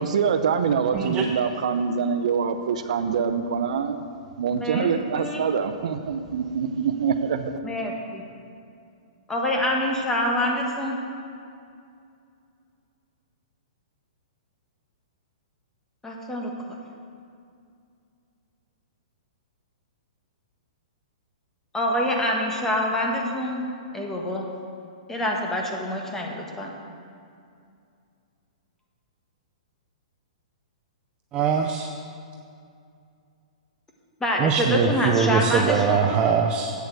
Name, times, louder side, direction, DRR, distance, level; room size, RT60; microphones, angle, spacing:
voice 1, 0.0-4.0 4.4-7.5, right 6 dB, 65° right, 8 dB, 0.7 m, -25 dB
voice 2, 0.9-1.3 31.3-31.9 34.4-36.7, right 7 dB, 25° right, 3 dB, 0.6 m, -22 dB
voice 3, 4.5-5.5 7.6-8.2 9.3-11.0 16.0-16.5 21.7-23.6 23.9-24.4 25.1-26.7 34.2-36.1, left 1 dB, 10° left, 0 dB, 1.4 m, -26 dB
8.4 x 7.9 x 6.6 m, 2.4 s
hypercardioid pair, 140°, 4 cm